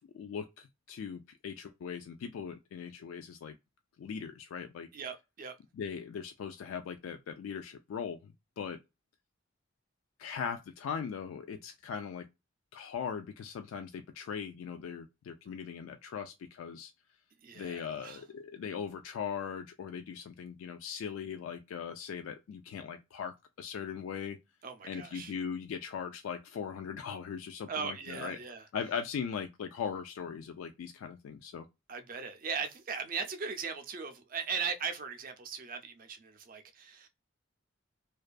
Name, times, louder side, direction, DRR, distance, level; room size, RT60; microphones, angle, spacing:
voice 1, 0.1-3.6 4.0-4.9 5.7-8.8 10.2-12.3 12.7-16.9 17.6-24.4 24.8-28.4 28.7-31.7, left 7 dB, 90° left, 0.3 m, -39 dB
voice 2, 4.9-5.6 17.4-18.2 24.6-25.3 27.7-28.6 31.9-37.1, right 5 dB, 45° right, 0.4 m, -38 dB
2.5 x 2.3 x 2.2 m
head